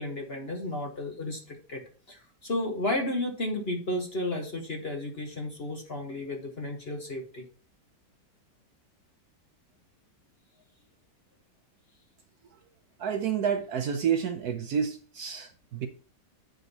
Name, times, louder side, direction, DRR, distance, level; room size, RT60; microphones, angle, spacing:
voice 1, 0.0-1.8 2.1-7.4, left 1 dB, 40° left, 2 dB, 1.1 m, -33 dB
voice 2, 13.0-15.9, right 7 dB, 65° right, 7 dB, 1.1 m, -29 dB
7.9 x 5.2 x 4.0 m, 0.39 s
omnidirectional pair, 2.1 m